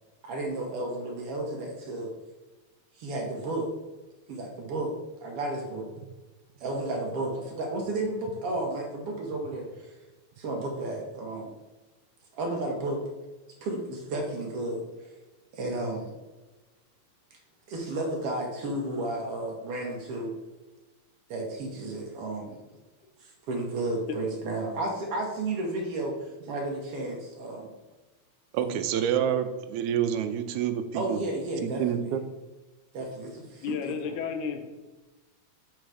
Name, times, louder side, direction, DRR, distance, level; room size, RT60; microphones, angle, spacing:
voice 1, 0.2-2.1 3.0-3.7 4.3-4.9 5.2-5.9 6.6-9.9 10.4-11.5 12.3-13.0 13.6-15.1 15.5-16.1 17.7-20.3 21.3-22.6 23.2-27.7 28.6-28.8 30.9-32.1 32.9-34.2, right 2 dB, 60° right, 0 dB, 1.8 m, -32 dB
voice 2, 28.5-31.2 31.6-32.2, right 9 dB, 85° right, 9 dB, 2.0 m, -28 dB
voice 3, 33.6-34.6, left 6 dB, 85° left, 6 dB, 2.3 m, -32 dB
8.0 x 4.0 x 4.8 m, 1.1 s
omnidirectional pair, 3.4 m